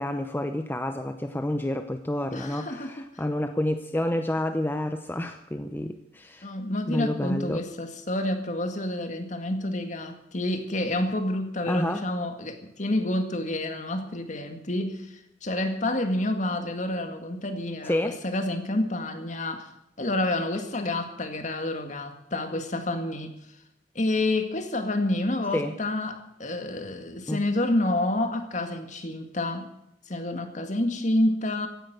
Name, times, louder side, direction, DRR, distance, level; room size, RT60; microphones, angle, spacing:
voice 1, 0.0-6.5 6.9-7.6 11.7-12.0 17.8-18.2 25.5-25.7 27.3-27.4, left 1 dB, 10° left, 7 dB, 0.7 m, -29 dB
voice 2, 2.3-2.9 6.4-19.7 20.0-23.4 24.0-29.7 30.1-31.7, left 1 dB, 45° left, 6 dB, 2.0 m, -28 dB
16.0 x 10.5 x 8.0 m, 0.80 s
head